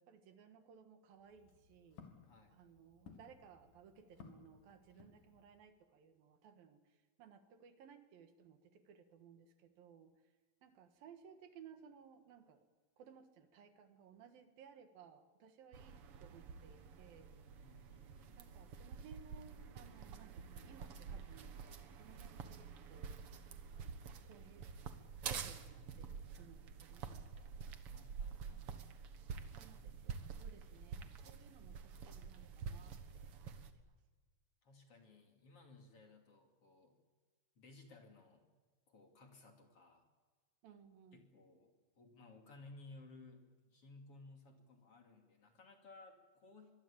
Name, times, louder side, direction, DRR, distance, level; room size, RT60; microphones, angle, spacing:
voice 1, 0.0-2.1 2.5-6.8 7.2-10.1 10.6-12.6 13.0-17.4 18.4-23.2 23.7-24.7 25.2-27.5 29.5-33.3 40.6-41.2, right 7 dB, 75° right, 8 dB, 3.3 m, -61 dB
Walk footsteps, 1.1-5.7, left 6 dB, 60° left, 3.6 m, -61 dB
voice 2, 2.1-2.5 17.6-18.4 27.9-28.7 34.6-37.0 37.6-38.5 38.9-40.1 41.1-46.7, left 3 dB, 40° left, 3 dB, 3.3 m, -59 dB
sound 1, 15.7-33.7, right 6 dB, 55° right, 1.7 m, -48 dB
24.5 x 22.0 x 8.7 m, 1.4 s
omnidirectional pair, 4.3 m